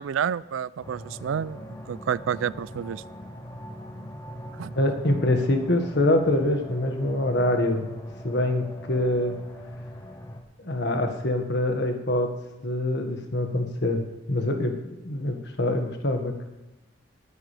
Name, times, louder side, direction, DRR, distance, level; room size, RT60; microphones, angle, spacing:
voice 1, 0.0-1.6 1.9-3.0 4.6-4.7, right 8 dB, 90° right, 20 dB, 0.4 m, -29 dB
sound 1, 0.8-10.4, equal, 20° left, 1.3 m, -41 dB
voice 2, 4.8-7.9 8.2-9.4 10.6-12.3 12.6-14.0 14.3-14.7 15.0-16.4, left 1 dB, 60° left, 4 dB, 1.7 m, -24 dB
18.5 x 9.8 x 3.4 m, 1.0 s
head